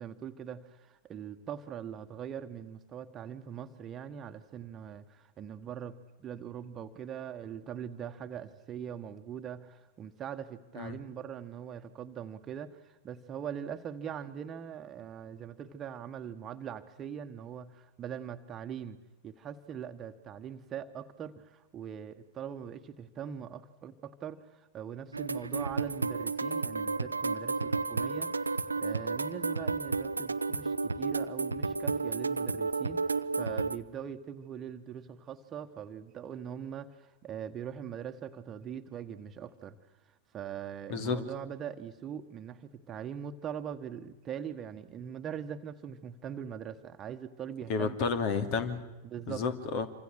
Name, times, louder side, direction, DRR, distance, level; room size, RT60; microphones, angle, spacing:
voice 1, 0.0-19.0 19.2-33.0 33.4-39.8 40.3-47.9 49.0-49.4, right 8 dB, 25° right, 7 dB, 1.5 m, -42 dB
sound 1, 25.1-33.8, right 4 dB, 80° right, 0.8 m, -32 dB
voice 2, 47.7-48.8 49.3-49.9, left 5 dB, 45° left, 9 dB, 2.6 m, -31 dB
27.5 x 25.5 x 6.6 m, 1.1 s
figure-of-eight pair, 90°, 0 cm